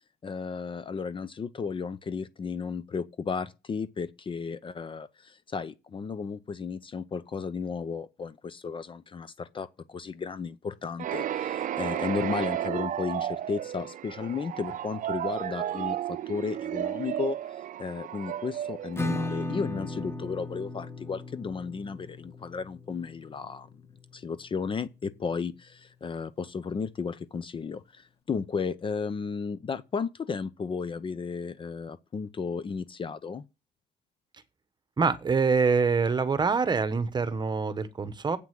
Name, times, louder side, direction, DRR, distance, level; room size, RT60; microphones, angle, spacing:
voice 1, 0.2-23.8 24.1-33.4, left 5 dB, 30° left, 0.7 m, -34 dB
sound 1, 11.0-19.7, right 11 dB, 50° right, 0.7 m, -33 dB
Acoustic guitar / Strum, 19.0-24.4, left 2 dB, 15° left, 1.4 m, -36 dB
voice 2, 35.0-38.4, right 5 dB, 25° right, 1.2 m, -25 dB
8.5 x 6.0 x 7.6 m
cardioid pair, 110°, 17 cm